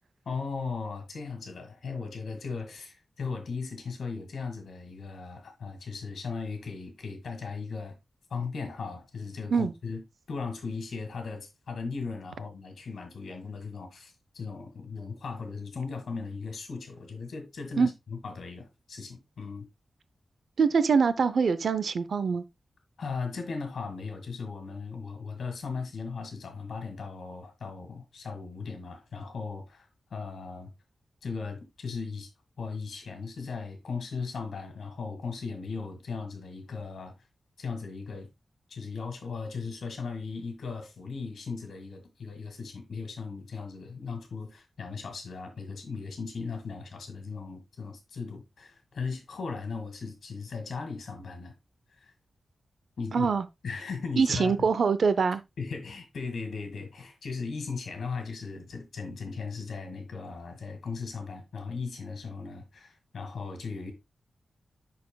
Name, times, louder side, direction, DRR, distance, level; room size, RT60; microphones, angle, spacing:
voice 1, 0.3-7.9 8.3-10.0 10.3-19.7 23.0-30.7 31.2-32.3 32.6-37.2 37.6-38.3 38.7-51.6 52.0-52.1 53.0-53.3 53.6-54.7 55.6-63.9, left 4 dB, 90° left, 1.9 m, -37 dB
voice 2, 20.6-22.4 53.1-53.4 54.2-55.4, right 5 dB, 65° right, 0.5 m, -24 dB
11.0 x 4.2 x 2.2 m
wide cardioid pair, 180°, 0 cm